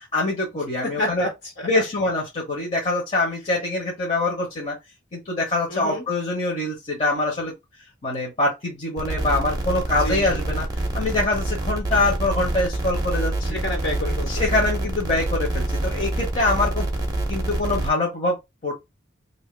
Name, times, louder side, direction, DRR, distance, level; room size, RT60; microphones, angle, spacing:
voice 1, 0.1-1.3 1.6-4.8 5.1-7.5 8.0-10.6 10.9-13.3 14.3-16.9 17.3-18.4 18.6-18.7, left 2 dB, 35° left, 1.2 m, -24 dB
voice 2, 0.8-1.8 5.7-6.1 10.0-10.4 13.4-14.7, left 1 dB, 65° left, 1.6 m, -30 dB
sound 1, 9.0-17.9, right 2 dB, 20° right, 0.8 m, -26 dB
2.9 x 2.8 x 3.3 m
head